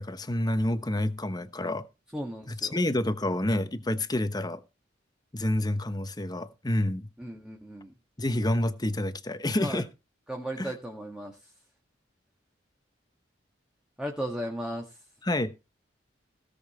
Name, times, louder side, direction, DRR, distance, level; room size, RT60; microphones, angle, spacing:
voice 1, 0.0-1.8 2.5-4.6 5.3-7.1 8.2-9.9 10.6-10.7 15.2-15.5, left 1 dB, 20° left, 1.0 m, -28 dB
voice 2, 2.1-2.8 7.2-7.9 9.6-9.8 10.3-11.5 14.0-15.0, equal, 5° right, 1.8 m, -36 dB
17.0 x 7.0 x 4.3 m
head